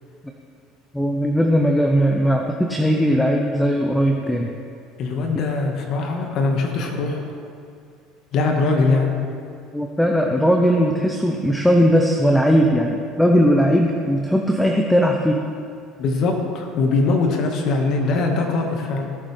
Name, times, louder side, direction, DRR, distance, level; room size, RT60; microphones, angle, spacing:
voice 1, 0.9-4.5 9.7-15.5, equal, 5° left, 2 dB, 0.9 m, -18 dB
voice 2, 5.0-7.2 8.3-9.2 16.0-19.1, left 3 dB, 60° left, 2 dB, 1.7 m, -21 dB
18.0 x 7.3 x 3.4 m, 2.3 s
hypercardioid pair, 80°, 0 cm